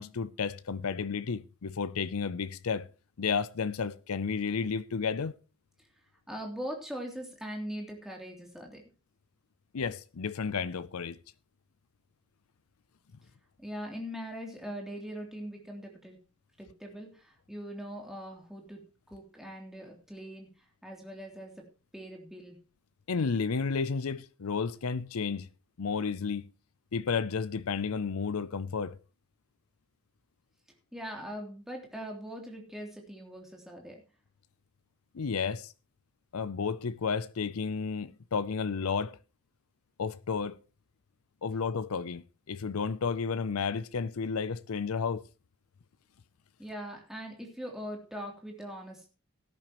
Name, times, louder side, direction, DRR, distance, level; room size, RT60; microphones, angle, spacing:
voice 1, 0.0-2.9 3.2-5.3 9.7-11.2 23.1-25.5 25.8-26.4 26.9-29.0 35.1-35.7 36.3-39.2 40.0-40.5 41.4-45.2, left 5 dB, 90° left, 0.6 m, -32 dB
voice 2, 6.3-8.8 13.6-16.2 16.6-18.8 19.1-21.6 21.9-22.6 30.9-34.0 46.6-49.1, equal, ahead, 3.1 m, -41 dB
17.5 x 10.5 x 3.0 m
head